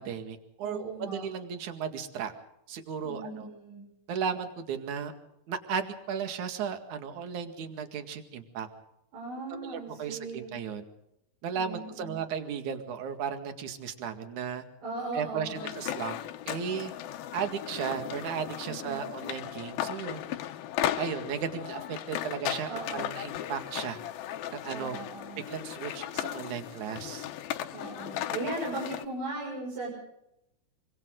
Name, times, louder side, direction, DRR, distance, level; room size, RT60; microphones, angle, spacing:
voice 1, 0.0-2.3 2.7-3.5 4.1-5.1 5.5-8.7 9.5-10.8 11.4-14.6 15.1-16.2 16.5-16.9 17.3-20.2 21.0-24.0 24.5-25.0 25.5-27.3, right 7 dB, 50° right, 6 dB, 2.7 m, -35 dB
voice 2, 0.6-1.3 3.0-3.8 9.1-10.5 11.5-12.1 14.8-15.7 18.6-19.1 22.7-23.0 24.7-25.4 27.7-29.9, right 2 dB, 90° right, -4 dB, 9.0 m, -38 dB
sound 1, 15.5-29.0, left 12 dB, 75° left, 2.2 m, -36 dB
27.0 x 25.0 x 3.9 m, 0.83 s
omnidirectional pair, 5.4 m